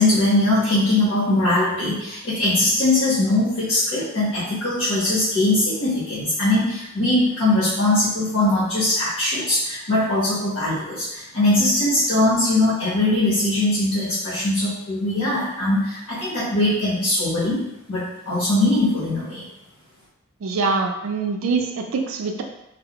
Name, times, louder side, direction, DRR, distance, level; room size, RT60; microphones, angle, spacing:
voice 1, 0.0-17.6 17.9-19.4, left 1 dB, 85° left, -11 dB, 1.0 m, -21 dB
voice 2, 20.4-22.4, right 4 dB, 70° right, 3 dB, 0.4 m, -24 dB
2.3 x 2.1 x 2.9 m, 0.88 s
head